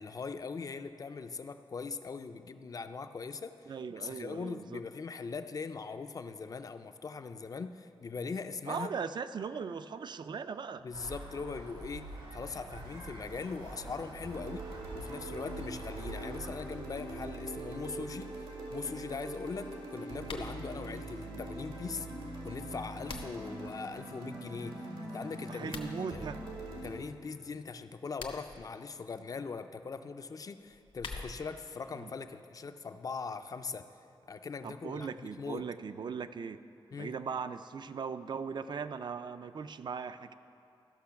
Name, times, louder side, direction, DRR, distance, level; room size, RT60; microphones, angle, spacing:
voice 1, 0.0-3.6 3.9-8.9 10.8-22.1 22.4-25.8 26.1-26.3 26.8-33.9 34.3-35.6 36.9-37.2, left 4 dB, 40° left, 10 dB, 0.4 m, -41 dB
voice 2, 3.7-4.8 8.7-10.8 21.3-21.4 25.5-26.4 31.9-32.1 34.6-36.6 37.0-40.3, right 6 dB, 55° right, 11 dB, 0.3 m, -39 dB
sound 1, 10.9-16.5, right 2 dB, 75° right, 1.5 m, -46 dB
sound 2, 14.2-26.9, right 1 dB, 90° right, 2.0 m, -42 dB
sound 3, 20.2-20.5 22.6-23.5 25.6-25.9 28.0-28.6 30.6-31.6, left 3 dB, 75° left, 0.9 m, -45 dB
13.5 x 6.4 x 5.7 m, 2.6 s
wide cardioid pair, 180°, 9 cm